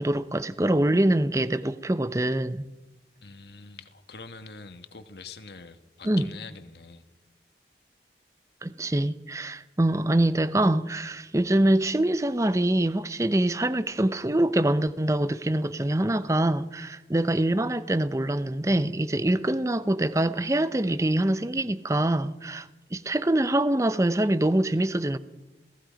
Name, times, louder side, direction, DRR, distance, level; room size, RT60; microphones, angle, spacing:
voice 1, 0.0-2.6 6.0-6.3 8.6-25.2, right 1 dB, 15° right, 0.6 m, -24 dB
voice 2, 3.2-7.0, left 4 dB, 70° left, 1.4 m, -44 dB
27.5 x 18.5 x 5.1 m
head